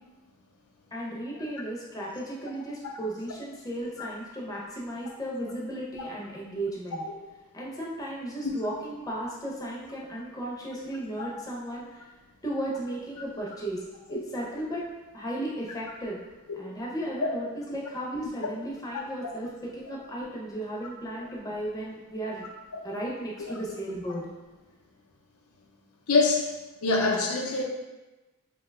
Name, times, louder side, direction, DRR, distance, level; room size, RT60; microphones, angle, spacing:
voice 1, 0.9-7.0 7.5-12.0 12.4-14.9 15.1-16.2 16.5-22.5 22.8-24.3, right 1 dB, 15° left, -5 dB, 0.5 m, -35 dB
voice 2, 26.1-26.5 26.8-27.6, left 3 dB, 85° left, 0 dB, 0.5 m, -24 dB
2.8 x 2.2 x 3.3 m, 1.1 s
head